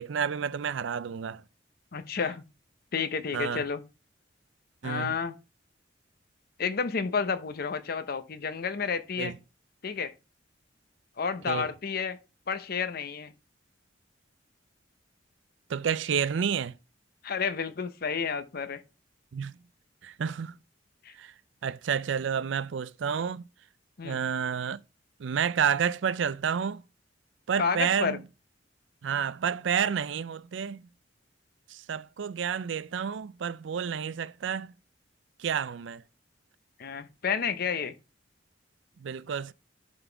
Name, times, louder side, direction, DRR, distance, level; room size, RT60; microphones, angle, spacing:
voice 1, 0.0-1.4 3.3-3.6 4.8-5.2 9.2-9.3 11.5-11.7 15.7-16.7 19.3-19.5 20.0-20.6 21.2-21.3 21.6-23.4 24.0-24.8 25.2-26.8 27.5-28.2 29.0-30.8 31.7-34.7 35.4-36.0 39.0-39.5, right 7 dB, 75° right, 0.4 m, -30 dB
voice 2, 1.9-2.4 2.9-3.8 4.8-5.3 6.6-9.3 9.8-10.1 11.2-12.2 12.5-13.3 17.2-18.8 21.0-21.1 24.0-24.2 27.6-28.2 36.8-37.9, left 6 dB, 55° left, 0.7 m, -30 dB
11.5 x 3.9 x 4.5 m
head